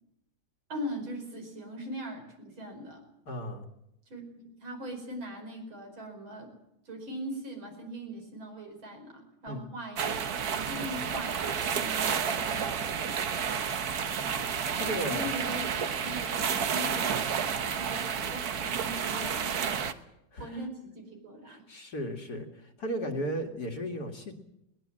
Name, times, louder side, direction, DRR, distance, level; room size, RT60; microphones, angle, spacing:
voice 1, 0.7-3.0 4.1-6.5 6.9-13.2 15.0-15.7 16.0-19.8 20.4-21.6, equal, 80° right, 3 dB, 5.9 m, -41 dB
voice 2, 3.3-3.7 9.5-9.6 14.7-15.3 20.3-20.6 21.5-24.3, equal, 50° left, 4 dB, 2.6 m, -35 dB
sound 1, 10.0-19.9, right 7 dB, 55° right, 1.5 m, -31 dB
21.0 x 19.5 x 7.6 m, 0.84 s
omnidirectional pair, 2.2 m